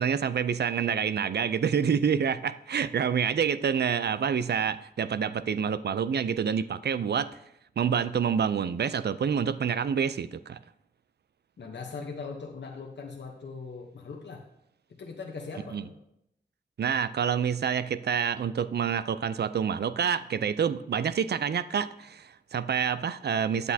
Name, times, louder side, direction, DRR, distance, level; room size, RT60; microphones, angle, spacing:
voice 1, 0.0-7.3 7.8-10.6 15.7-15.8 16.8-23.7, right 7 dB, 70° right, 14 dB, 0.4 m, -27 dB
voice 2, 11.6-14.5 15.0-15.9, left 4 dB, 85° left, 1 dB, 1.0 m, -40 dB
9.4 x 8.1 x 2.8 m, 0.78 s
cardioid pair, 55°, 18 cm